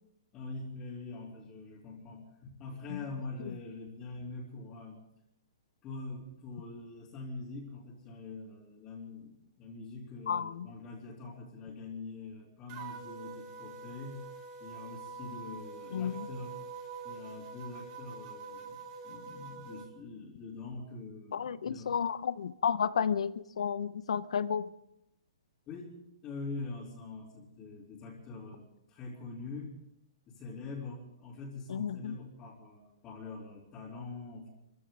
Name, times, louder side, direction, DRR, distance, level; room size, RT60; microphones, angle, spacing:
voice 1, 0.3-5.0 5.8-14.2 14.6-16.6 17.0-22.0 25.7-29.8 30.3-34.5, left 3 dB, 20° left, -6 dB, 2.9 m, -44 dB
voice 2, 10.3-10.7 15.9-16.3 21.3-24.7 31.7-32.2, left 7 dB, 80° left, 15 dB, 0.8 m, -32 dB
sound 1, 12.7-19.9, right 4 dB, 30° right, 2.1 m, -45 dB
26.0 x 15.0 x 3.8 m, 0.81 s
hypercardioid pair, 160°, 3 cm